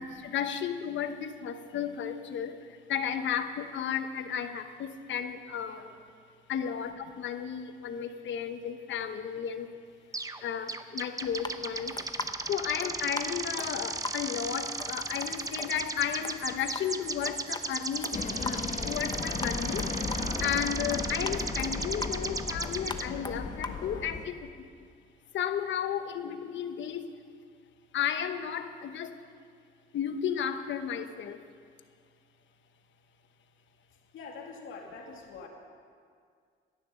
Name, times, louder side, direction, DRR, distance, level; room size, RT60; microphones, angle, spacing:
voice 1, 0.0-2.5 2.9-5.8 6.5-9.7 10.4-11.9 12.5-18.6 18.8-19.8 20.4-24.5 25.3-27.1 27.9-29.1 29.9-31.4, left 8 dB, 70° left, 9 dB, 1.1 m, -33 dB
sound 1, 10.1-10.4 10.7-23.1, right 3 dB, 15° right, 0.7 m, -36 dB
sound 2, 11.2-24.1, left 3 dB, 20° left, 0.9 m, -43 dB
sound 3, 18.1-24.3, left 4 dB, 40° left, 1.5 m, -35 dB
voice 2, 34.1-35.5, left 4 dB, 85° left, 1 dB, 2.3 m, -44 dB
17.0 x 11.0 x 6.9 m, 2.1 s
cardioid pair, 90°, 20 cm